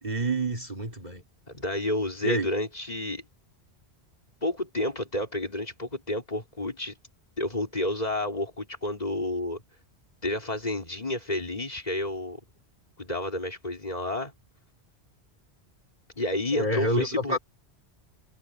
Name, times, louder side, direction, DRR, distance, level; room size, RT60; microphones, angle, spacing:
voice 1, 0.0-1.2 2.2-2.5 16.5-17.4, right 1 dB, 40° right, 3.7 m, -27 dB
voice 2, 1.5-3.2 4.4-6.9 7.4-9.6 10.2-12.4 13.0-14.3 16.2-17.4, left 1 dB, 40° left, 5.3 m, -30 dB
omnidirectional pair, 1.1 m